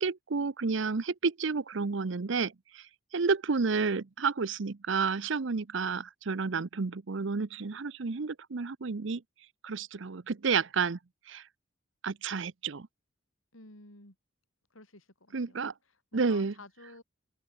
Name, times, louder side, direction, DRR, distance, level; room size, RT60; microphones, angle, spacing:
voice 1, 0.0-2.5 3.1-9.2 9.6-11.0 11.3-11.4 12.0-12.9 15.3-15.7 16.1-16.5, right 4 dB, 65° right, 0.7 m, -30 dB
voice 2, 13.5-14.2 14.7-17.0, left 2 dB, 85° left, 7.2 m, -53 dB
head